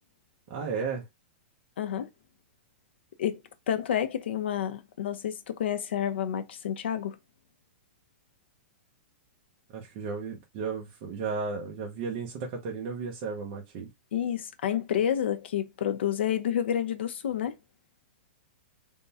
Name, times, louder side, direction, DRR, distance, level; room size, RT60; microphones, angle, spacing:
voice 1, 0.5-1.0 9.7-13.9, right 5 dB, 30° right, 0.7 m, -34 dB
voice 2, 1.8-2.1 3.2-3.4 3.7-7.2 14.1-17.5, left 9 dB, 70° left, 0.7 m, -29 dB
3.6 x 2.2 x 4.0 m
supercardioid pair, 175°, 6 cm